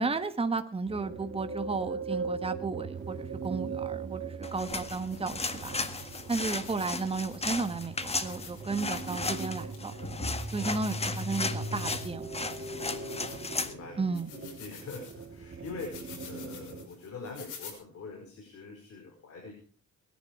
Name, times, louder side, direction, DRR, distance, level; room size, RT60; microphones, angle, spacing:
voice 1, 0.0-5.8 6.3-9.9 10.5-12.5 14.0-14.3, right 3 dB, 20° right, 8 dB, 1.5 m, -33 dB
sound 1, 0.9-16.9, right 3 dB, 40° right, 2.7 m, -39 dB
sound 2, 3.4-3.5 4.1-4.2 4.5-13.7 14.1-17.7, left 6 dB, 85° left, 6.0 m, -50 dB
sound 3, 4.4-13.7, left 3 dB, 20° left, 1.6 m, -35 dB
voice 2, 12.7-19.5, left 3 dB, 50° left, 1 dB, 5.2 m, -45 dB
22.5 x 10.5 x 4.8 m, 0.41 s
cardioid pair, 90°, 30 cm